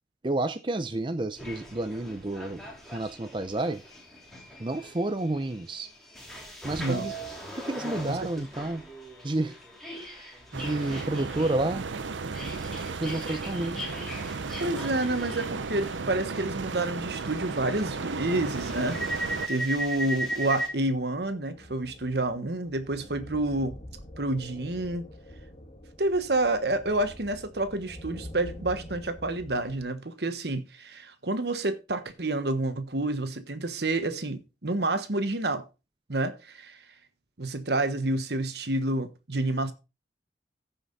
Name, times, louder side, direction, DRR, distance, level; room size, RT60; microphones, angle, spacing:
voice 1, 0.2-2.6 2.9-3.8 4.6-5.9 6.6-7.1 7.5-8.8 9.2-9.6 9.9-10.3 10.5-11.8 13.0-13.8, right 2 dB, 25° right, 0.5 m, -30 dB
sound 1, 1.4-20.7, right 1 dB, ahead, 3.6 m, -39 dB
voice 2, 6.8-7.1 8.1-8.5 13.4-13.5 14.6-23.8 24.2-25.0 26.0-35.6 36.1-36.8 37.4-39.7, right 2 dB, 65° right, 1.3 m, -29 dB
sound 2, 10.5-19.5, right 4 dB, 90° right, 0.7 m, -35 dB
sound 3, 18.6-29.8, equal, 35° left, 1.7 m, -47 dB
15.0 x 5.8 x 4.0 m
head